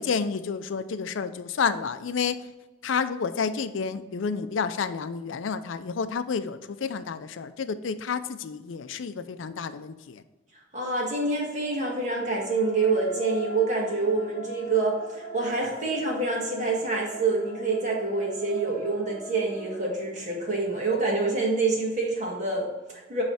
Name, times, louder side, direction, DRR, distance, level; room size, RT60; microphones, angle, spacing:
voice 1, 0.0-2.4 2.8-10.2, left 5 dB, 75° left, 12 dB, 0.4 m, -30 dB
voice 2, 10.7-23.2, right 3 dB, 35° right, -2 dB, 1.7 m, -27 dB
sound 1, 11.5-20.7, equal, 35° left, 0.7 m, -41 dB
9.0 x 3.2 x 4.2 m, 1.2 s
head